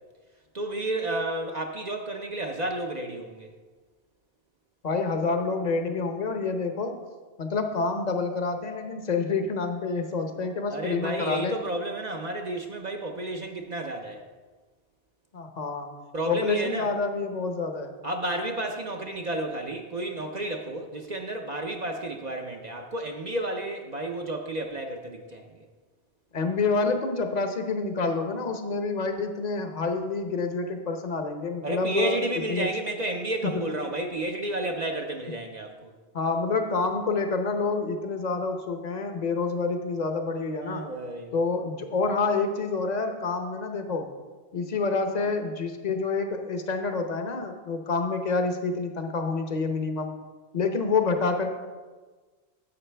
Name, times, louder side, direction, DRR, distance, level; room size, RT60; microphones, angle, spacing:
voice 1, 0.5-3.5 10.7-14.2 16.1-16.9 18.0-25.7 31.6-35.9 40.6-41.3, right 1 dB, 45° right, 2 dB, 0.7 m, -31 dB
voice 2, 4.8-7.0 7.4-11.6 15.3-15.9 16.3-17.9 26.3-32.2 32.5-32.7 36.1-40.9 41.3-44.1 44.5-50.1 50.5-51.5, left 4 dB, 45° left, 6 dB, 0.9 m, -28 dB
11.0 x 7.9 x 3.4 m, 1.4 s
omnidirectional pair, 1.1 m